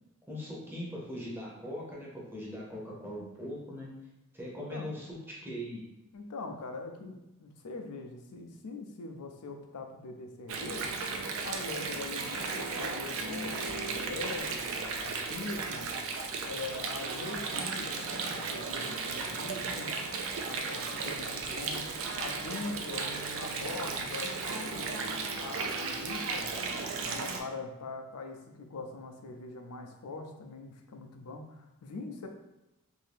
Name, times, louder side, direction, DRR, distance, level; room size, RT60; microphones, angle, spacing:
voice 1, 0.3-3.9 4.3-5.8, equal, 10° right, -5 dB, 0.7 m, -40 dB
voice 2, 6.1-11.0 11.4-15.9 16.4-19.9 20.4-24.9 25.4-26.5 27.0-32.3, left 3 dB, 90° left, 4 dB, 0.5 m, -42 dB
Water, 10.5-27.4, right 4 dB, 60° right, 0.4 m, -35 dB
2.7 x 2.6 x 3.4 m, 0.93 s
head